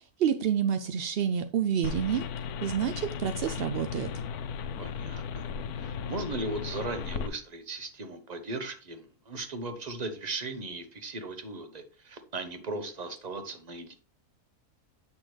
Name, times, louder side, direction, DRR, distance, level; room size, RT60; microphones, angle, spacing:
voice 1, 0.0-2.2 2.6-4.1, right 8 dB, 70° right, 9 dB, 0.5 m, -28 dB
fan sound- from my external hard drive, 1.8-7.3, left 6 dB, 80° left, 1.2 m, -36 dB
voice 2, 4.8-5.5 5.8-13.9, right 2 dB, 30° right, 7 dB, 1.0 m, -37 dB
8.5 x 5.9 x 3.2 m, 0.37 s
omnidirectional pair, 1.6 m